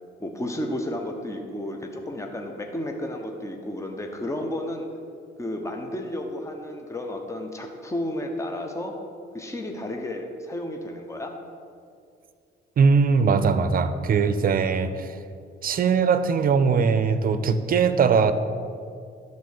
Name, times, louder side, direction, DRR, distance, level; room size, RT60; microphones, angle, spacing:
voice 1, 0.2-4.9 5.4-9.0 9.3-11.4, left 1 dB, 15° left, 3 dB, 1.0 m, -32 dB
voice 2, 12.8-15.2 15.6-18.3, right 5 dB, 45° right, 12 dB, 0.6 m, -20 dB
11.5 x 4.2 x 6.6 m, 2.3 s
cardioid pair, 90°, 20 cm